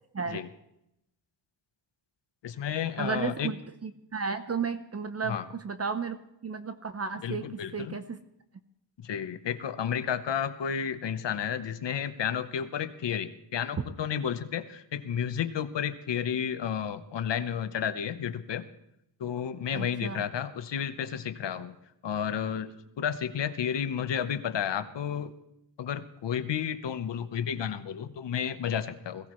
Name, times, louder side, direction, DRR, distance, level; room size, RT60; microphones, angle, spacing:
voice 1, 2.4-3.5 5.3-5.5 7.2-8.0 9.0-18.6 19.2-21.8 22.0-22.7 23.0-25.3 25.8-29.3, left 8 dB, 75° left, 11 dB, 1.0 m, -32 dB
voice 2, 3.0-3.6 3.8-5.4 5.6-6.2 6.4-8.2 13.8-13.9 19.7-20.2, right 5 dB, 35° right, 9 dB, 0.7 m, -33 dB
21.0 x 16.5 x 3.1 m, 0.82 s
wide cardioid pair, 125°, 43 cm